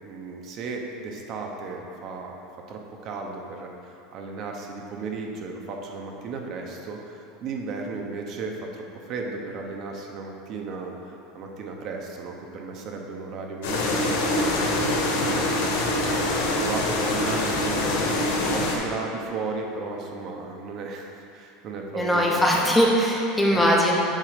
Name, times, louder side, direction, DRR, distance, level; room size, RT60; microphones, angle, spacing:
voice 1, 0.0-2.4 2.7-14.5 15.0-16.1 16.4-18.0 18.5-22.8 23.5-23.7, right 4 dB, 35° right, 1 dB, 0.8 m, -35 dB
sound 1, 13.6-18.8, left 1 dB, 85° left, 1.5 m, -24 dB
voice 2, 21.9-23.9, equal, 5° left, -3 dB, 0.8 m, -20 dB
7.4 x 5.0 x 5.0 m, 2.7 s
supercardioid pair, 175°, 0 cm